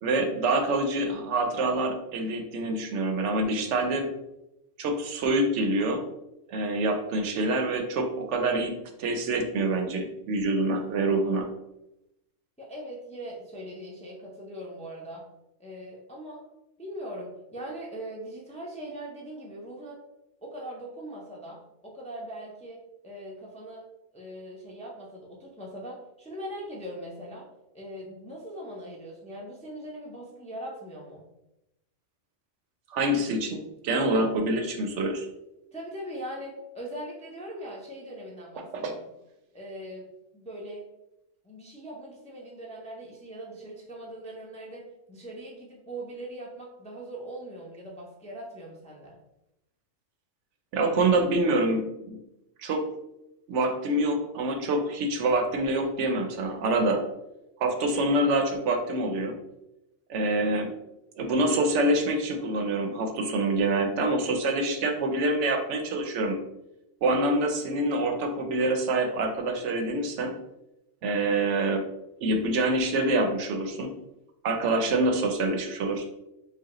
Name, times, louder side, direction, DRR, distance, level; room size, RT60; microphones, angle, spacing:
voice 1, 0.0-4.1 4.8-6.0 6.5-8.7 9.0-11.5 32.9-35.3 38.6-38.9 50.7-52.2 52.6-52.9 53.5-57.0 57.6-59.3 60.1-60.7 61.2-66.4 67.0-70.3 71.0-71.8 72.2-73.9 74.4-76.0, right 2 dB, 70° right, 5 dB, 0.9 m, -26 dB
voice 2, 12.6-15.2 15.6-16.4 16.8-20.0 20.4-23.8 24.1-27.5 27.7-31.3 35.7-39.0 39.5-40.1 40.3-40.9 41.4-44.8 45.1-49.2, right 1 dB, 10° left, -3 dB, 0.5 m, -40 dB
4.8 x 2.3 x 2.9 m, 0.89 s
omnidirectional pair, 1.3 m